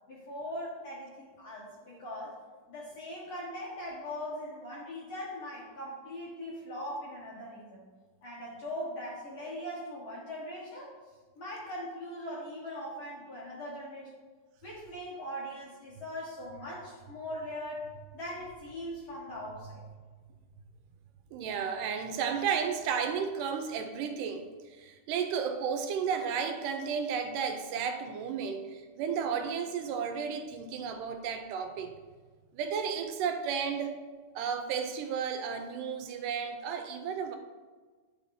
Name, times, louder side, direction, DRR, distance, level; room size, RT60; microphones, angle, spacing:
voice 1, 0.1-2.3 2.7-7.8 8.2-10.9 11.4-14.1 14.6-17.9 18.1-19.8, equal, 55° left, -6 dB, 1.6 m, -40 dB
voice 2, 21.3-31.9 32.5-34.0 34.4-37.4, right 6 dB, 80° right, 6 dB, 2.2 m, -33 dB
9.6 x 4.9 x 2.6 m, 1.4 s
omnidirectional pair, 3.8 m